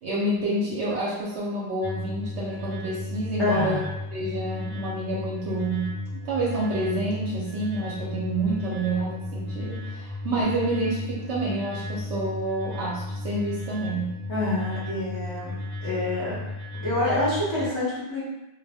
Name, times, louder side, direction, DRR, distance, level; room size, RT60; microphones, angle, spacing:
voice 1, 0.0-3.8 4.1-14.1, right 2 dB, 70° right, -6 dB, 0.9 m, -28 dB
sound 1, 1.8-17.7, left 2 dB, 55° right, 0.4 m, -35 dB
voice 2, 3.4-3.9 14.3-15.6 15.8-16.4 16.7-18.2, left 2 dB, 30° left, -11 dB, 0.6 m, -27 dB
2.2 x 2.1 x 3.3 m, 0.98 s
omnidirectional pair, 1.2 m